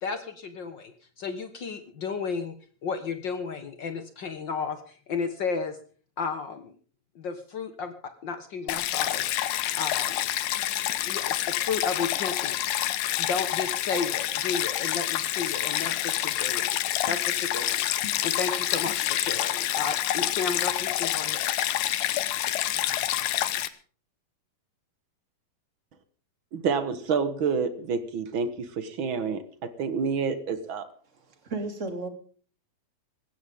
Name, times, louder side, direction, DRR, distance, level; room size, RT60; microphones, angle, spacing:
voice 1, 0.0-2.5 2.8-5.8 6.2-6.7 7.1-7.9 8.2-9.2 9.8-10.3 11.0-12.9 13.2-17.9 18.2-21.5, left 5 dB, 90° left, 8 dB, 1.0 m, -33 dB
Stream, 8.7-23.7, left 13 dB, 75° left, 2.6 m, -28 dB
voice 2, 26.5-30.9, right 5 dB, 70° right, 11 dB, 1.2 m, -28 dB
voice 3, 31.3-32.1, right 3 dB, 20° right, 6 dB, 2.7 m, -33 dB
20.0 x 17.0 x 3.7 m, 0.43 s
omnidirectional pair, 4.2 m